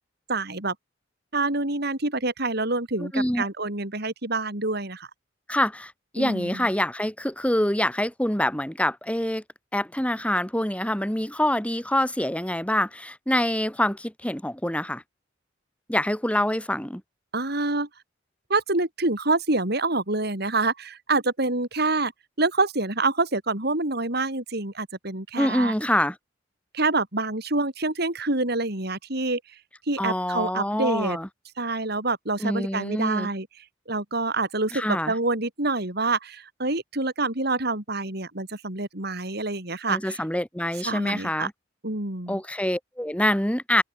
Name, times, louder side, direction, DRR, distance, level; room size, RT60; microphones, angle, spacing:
voice 1, 0.3-0.7 1.3-5.1 6.2-6.7 17.3-17.9 18.5-22.1 22.4-25.7 26.7-29.4 29.9-31.2 31.6-33.5 33.9-40.2 40.8-41.5 41.8-42.4, right 3 dB, 60° right, 4.3 m, -26 dB
voice 2, 3.0-3.5 5.5-9.4 9.7-15.0 15.9-17.0 25.3-26.2 30.0-31.3 32.4-33.3 34.7-35.1 39.9-41.5 42.3-43.8, left 1 dB, 5° left, 3.8 m, -25 dB
head